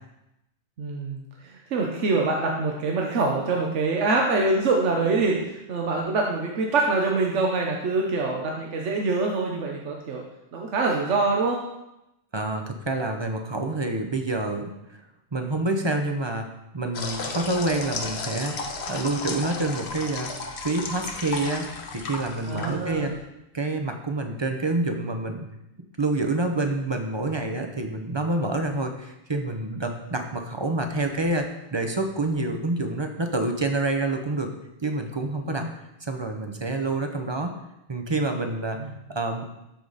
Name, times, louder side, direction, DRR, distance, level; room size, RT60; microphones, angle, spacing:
voice 1, 0.8-10.2 10.5-11.6 22.5-23.2 35.5-35.6 38.8-38.9, right 3 dB, 80° right, 0 dB, 1.2 m, -25 dB
voice 2, 12.3-14.7 15.3-16.5 16.7-20.3 20.6-23.1 23.5-25.5 26.0-34.5 34.8-35.7 36.0-37.5 37.9-38.8 39.1-39.5, right 2 dB, 25° right, 4 dB, 0.7 m, -27 dB
sound 1, 16.9-23.2, left 4 dB, 65° left, 1.1 m, -34 dB
13.0 x 4.9 x 4.0 m, 0.89 s
omnidirectional pair, 1.2 m